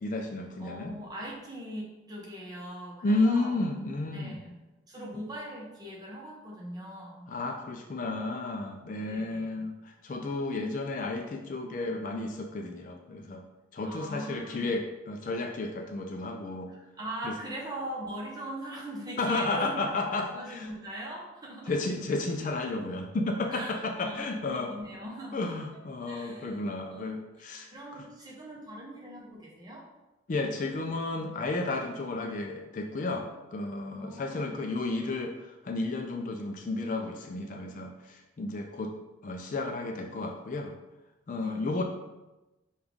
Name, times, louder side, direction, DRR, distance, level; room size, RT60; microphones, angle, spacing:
voice 1, 0.0-1.0 3.0-4.4 5.1-5.2 7.3-13.4 13.7-16.7 17.2-17.3 19.2-20.7 21.7-24.7 25.3-28.1 30.3-38.9 39.2-40.7 41.3-41.8, left 2 dB, 40° left, 3 dB, 0.3 m, -32 dB
voice 2, 0.6-3.6 4.1-4.5 4.9-7.3 9.0-9.5 13.8-14.7 16.7-21.7 23.5-25.6 26.1-27.1 27.7-29.8 34.0-34.6 41.4-41.8, right 1 dB, 20° right, -4 dB, 0.8 m, -41 dB
5.3 x 2.4 x 3.5 m, 1.0 s
head